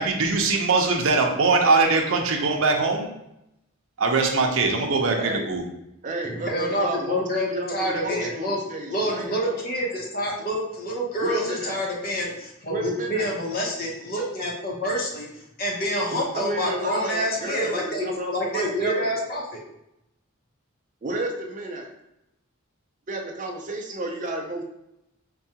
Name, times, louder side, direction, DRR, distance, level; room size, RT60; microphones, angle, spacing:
voice 1, 0.0-3.1 4.0-5.6, right 3 dB, 75° right, 2 dB, 0.6 m, -21 dB
voice 2, 5.2-5.5 6.0-9.6 11.2-11.8 12.7-13.3 16.1-19.1 21.0-21.9 23.1-24.6, right 2 dB, 35° right, 2 dB, 0.5 m, -32 dB
voice 3, 6.2-8.6 8.9-18.1 18.3-19.6, equal, 45° left, -2 dB, 0.8 m, -27 dB
4.6 x 2.3 x 2.8 m, 0.84 s
head